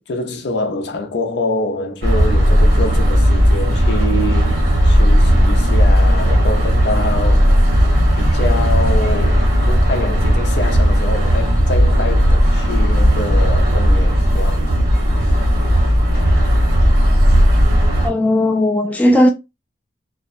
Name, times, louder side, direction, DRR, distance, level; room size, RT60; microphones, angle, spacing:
voice 1, 0.1-7.6 8.2-14.7, left 2 dB, 70° left, 0.5 m, -25 dB
sound 1, 2.0-18.1, equal, 60° right, 1.1 m, -14 dB
voice 2, 18.0-19.3, left 1 dB, 10° left, 0.4 m, -15 dB
2.5 x 2.1 x 2.4 m
head